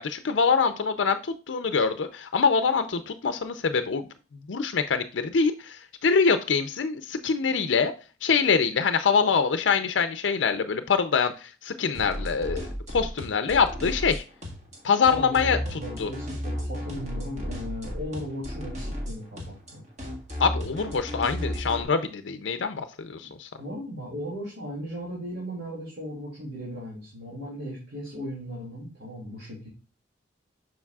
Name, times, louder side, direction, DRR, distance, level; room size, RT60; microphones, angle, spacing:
voice 1, 0.0-4.1 4.5-7.9 8.2-14.2 14.8-15.6 16.0-16.1 20.4-23.5, left 5 dB, 75° left, 9 dB, 0.5 m, -24 dB
sound 1, 11.9-21.8, equal, 40° right, 1.6 m, -34 dB
voice 2, 15.0-19.8 23.2-29.7, equal, 60° right, -5 dB, 2.5 m, -37 dB
7.1 x 6.1 x 2.3 m, 0.33 s
head